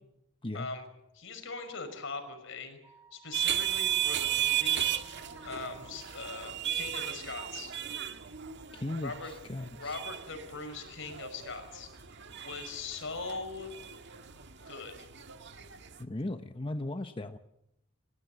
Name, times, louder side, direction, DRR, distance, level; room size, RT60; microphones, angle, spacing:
voice 1, 1.2-2.8 3.1-4.9 5.4-7.7 9.0-9.3 9.8-11.9 12.4-13.7 14.6-15.1, left 4 dB, 65° left, 8 dB, 5.6 m, -41 dB
Wind instrument woodwind instrument, 2.8-6.7, right 3 dB, 15° right, 2.4 m, -56 dB
huinan market street, 3.3-16.0, right 11 dB, 60° right, 1.8 m, -35 dB
voice 2, 8.7-10.0 16.0-17.4, left 2 dB, 25° left, 8 dB, 0.9 m, -37 dB
29.0 x 15.5 x 8.0 m, 0.85 s
head